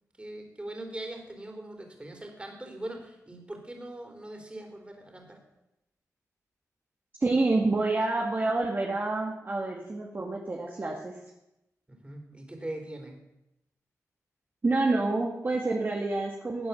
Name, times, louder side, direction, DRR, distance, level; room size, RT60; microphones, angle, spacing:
voice 1, 0.2-5.4 11.9-13.2, right 1 dB, 20° right, 2 dB, 4.0 m, -41 dB
voice 2, 7.2-11.2 14.6-16.7, right 2 dB, 35° right, -1 dB, 2.1 m, -28 dB
17.0 x 9.4 x 7.1 m, 0.89 s
cardioid pair, 80°, 6 cm